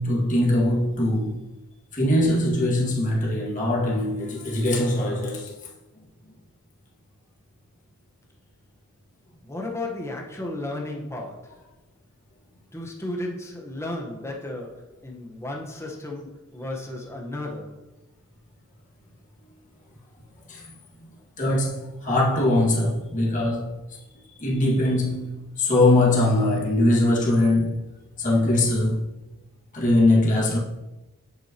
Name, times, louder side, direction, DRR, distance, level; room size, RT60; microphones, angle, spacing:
voice 1, 0.0-1.4 1.9-5.5 6.0-6.1 20.5-21.1 21.4-24.0 24.3-27.8 28.2-29.1 29.7-30.6, left 1 dB, 35° left, 2.0 m, -22 dB
voice 2, 9.4-11.6 12.7-17.9, left 1 dB, 10° left, 1.2 m, -34 dB
9.9 x 8.1 x 3.0 m
head